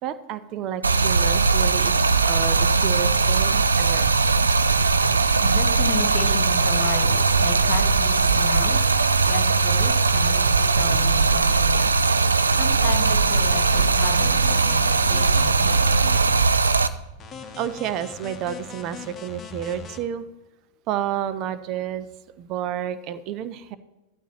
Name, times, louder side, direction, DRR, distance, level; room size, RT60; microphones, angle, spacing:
voice 1, 0.0-4.1 17.5-20.2 20.9-22.1 22.4-23.8, right 10 dB, 40° right, 13 dB, 0.7 m, -30 dB
Stream, 0.8-16.9, right 4 dB, 75° right, 0.5 m, -19 dB
voice 2, 5.4-8.8 9.3-10.4 10.8-12.1 12.6-15.8, left 8 dB, 40° left, 8 dB, 1.5 m, -34 dB
sound 1, 10.7-11.3, left 4 dB, 5° right, 2.8 m, -41 dB
sound 2, 12.9-16.3 17.2-20.0, left 5 dB, 20° left, 1.2 m, -40 dB
14.0 x 12.0 x 3.0 m, 1.0 s
figure-of-eight pair, 90°, 0 cm